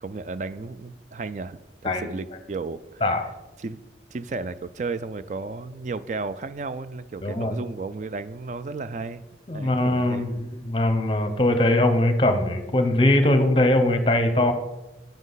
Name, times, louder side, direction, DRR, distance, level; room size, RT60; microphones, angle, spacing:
voice 1, 0.0-3.0 3.6-3.8 4.1-9.2 9.5-10.3, right 3 dB, 40° right, 14 dB, 0.3 m, -33 dB
voice 2, 7.2-7.5 9.5-14.5, left 1 dB, 30° left, 7 dB, 0.8 m, -21 dB
8.9 x 7.4 x 4.0 m, 1.1 s
head